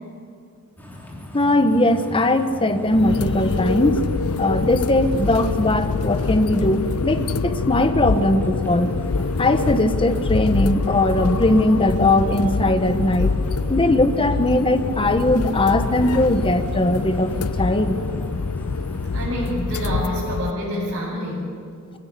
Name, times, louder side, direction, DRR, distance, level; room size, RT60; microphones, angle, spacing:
sound 1, 0.8-19.3, left 1 dB, 10° left, 3.4 m, -37 dB
voice 1, 1.3-4.0 4.4-8.9 9.4-13.3 13.7-18.0, left 1 dB, 25° left, 8 dB, 1.2 m, -19 dB
sound 2, 2.9-20.5, left 4 dB, 90° left, 0.6 m, -25 dB
voice 2, 19.1-21.4, equal, 55° right, -7 dB, 6.2 m, -27 dB
24.5 x 16.0 x 8.6 m, 2.4 s
head